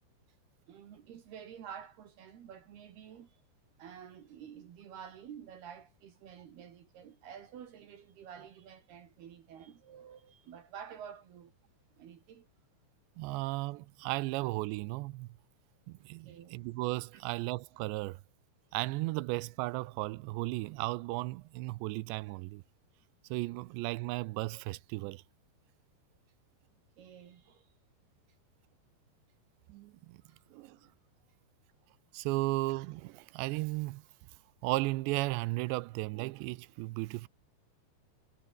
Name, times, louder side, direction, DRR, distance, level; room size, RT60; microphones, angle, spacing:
voice 1, 0.7-3.3 3.8-11.5 12.0-12.5 16.3-16.5 17.1-17.2 27.0-27.6, right 8 dB, 65° right, 4.1 m, -50 dB
voice 2, 13.2-15.3 15.9-18.2 18.7-22.6 23.3-25.2 29.7-30.2 30.5-30.8 32.1-34.0 34.6-37.3, right 21 dB, 80° right, 2.9 m, -35 dB
omnidirectional pair, 5.1 m